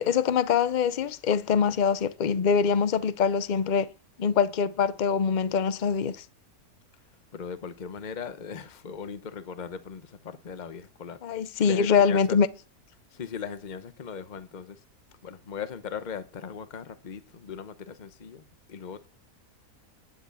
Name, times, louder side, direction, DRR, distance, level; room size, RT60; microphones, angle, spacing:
voice 1, 0.0-3.9 4.2-6.2 11.2-12.5, left 6 dB, 55° left, 0.5 m, -24 dB
voice 2, 7.3-11.2 11.6-12.4 13.1-14.8 15.2-19.1, left 6 dB, 35° left, 0.9 m, -39 dB
10.5 x 7.1 x 6.9 m
omnidirectional pair, 1.6 m